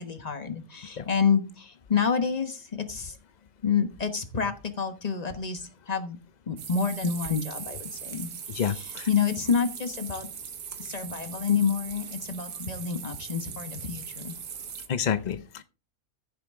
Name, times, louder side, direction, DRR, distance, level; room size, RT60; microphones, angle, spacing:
voice 1, 0.0-3.2 3.6-6.2 6.5-10.3 10.8-14.3, left 6 dB, 30° left, 9 dB, 1.2 m, -28 dB
sound 1, 6.6-14.9, right 7 dB, 85° right, 1.6 m, -40 dB
voice 2, 8.6-9.1 14.9-15.6, left 8 dB, 70° left, 12 dB, 0.4 m, -29 dB
14.5 x 6.8 x 3.6 m, 0.32 s
omnidirectional pair, 1.5 m